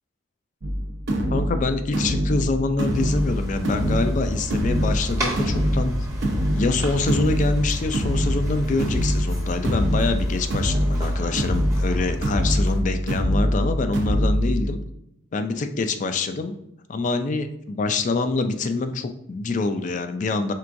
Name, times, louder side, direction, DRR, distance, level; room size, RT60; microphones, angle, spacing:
sound 1, 0.6-14.6, equal, 60° right, 0.6 m, -24 dB
voice 1, 1.3-5.9 6.5-14.8 15.3-16.6 16.9-20.5, left 3 dB, 35° left, 8 dB, 0.3 m, -25 dB
sound 2, 2.9-12.8, equal, 15° right, 0.8 m, -33 dB
4.5 x 3.5 x 2.5 m, 0.79 s
head